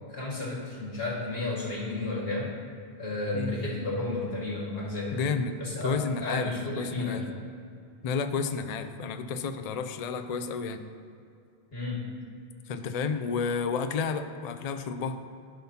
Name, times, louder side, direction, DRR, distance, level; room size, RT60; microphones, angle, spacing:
voice 1, 0.1-2.5 3.0-5.2 5.6-7.3 11.7-12.1, left 2 dB, 70° left, -4 dB, 2.1 m, -32 dB
voice 2, 5.1-6.5 6.8-7.2 8.0-10.8 12.7-15.2, left 5 dB, 50° left, 9 dB, 0.5 m, -31 dB
14.5 x 5.7 x 2.9 m, 2.4 s
omnidirectional pair, 1.1 m